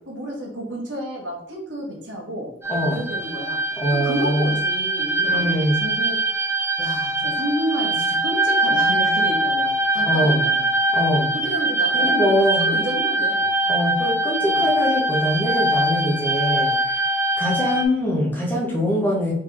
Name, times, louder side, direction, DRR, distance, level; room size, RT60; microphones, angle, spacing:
voice 1, 0.1-2.5 2.9-3.6 3.9-6.2 6.8-10.7 11.4-13.4 14.4-14.7, equal, 70° right, -1 dB, 1.3 m, -30 dB
sound 1, 2.6-17.9, right 1 dB, 10° right, 0.4 m, -22 dB
voice 2, 2.7-3.1 3.8-4.5 5.3-5.8 9.9-10.4 10.9-11.3 11.9-12.8 13.6-17.1 17.4-19.3, equal, 10° left, -4 dB, 0.9 m, -23 dB
3.5 x 3.3 x 3.5 m, 0.71 s
head